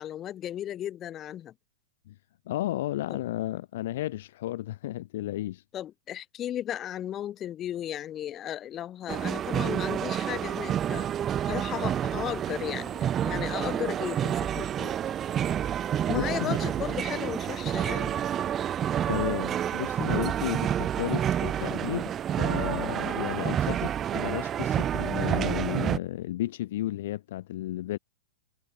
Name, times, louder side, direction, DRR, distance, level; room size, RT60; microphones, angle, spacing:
voice 1, 0.0-1.5 3.1-3.2 5.7-11.1 11.5-15.0 16.1-18.2, left 11 dB, 30° left, 2.9 m, -35 dB
voice 2, 2.5-5.6 16.1-16.6 19.1-28.0, left 14 dB, 60° left, 1.6 m, -33 dB
sound 1, 9.1-26.0, right 10 dB, 25° right, 0.4 m, -29 dB
hypercardioid pair, 115°, 0 cm